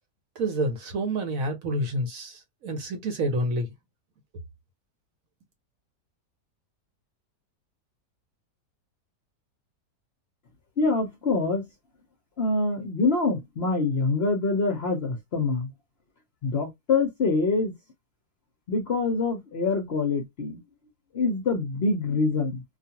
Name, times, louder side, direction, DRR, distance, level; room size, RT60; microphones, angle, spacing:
voice 1, 0.4-3.7, right 1 dB, 65° right, 1.0 m, -28 dB
voice 2, 10.8-11.6 12.4-15.7 16.4-17.7 18.7-20.6 21.1-22.6, left 3 dB, 55° left, 0.7 m, -25 dB
2.5 x 2.3 x 2.8 m
omnidirectional pair, 1.8 m